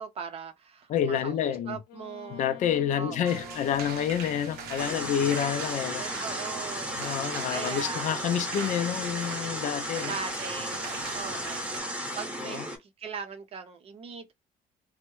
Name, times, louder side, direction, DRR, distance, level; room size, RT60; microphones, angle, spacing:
voice 1, 0.0-2.4 3.0-3.6 6.0-8.2 10.0-11.8 12.2-14.3, right 6 dB, 40° right, 0.6 m, -40 dB
voice 2, 0.9-1.8 2.3-6.0 7.0-10.1 12.4-12.7, left 9 dB, 50° left, 0.4 m, -28 dB
Wind instrument woodwind instrument, 1.9-6.2, left 7 dB, 85° left, 0.8 m, -48 dB
sound 1, 3.2-11.8, right 7 dB, 85° right, 0.7 m, -42 dB
sound 2, 4.8-12.8, equal, 10° right, 0.9 m, -34 dB
3.4 x 2.1 x 3.0 m
cardioid pair, 170°, 16 cm